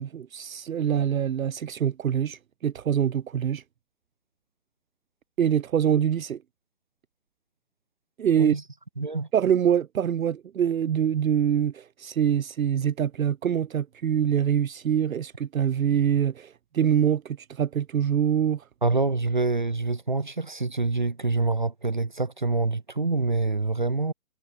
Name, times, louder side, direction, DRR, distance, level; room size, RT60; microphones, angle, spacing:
voice 1, 0.0-3.6 5.4-6.4 8.2-8.6 9.3-18.7, right 9 dB, 75° right, 0.8 m, -24 dB
voice 2, 9.0-9.3 18.8-24.1, right 3 dB, 35° right, 0.5 m, -26 dB
hypercardioid pair, 175°, 42 cm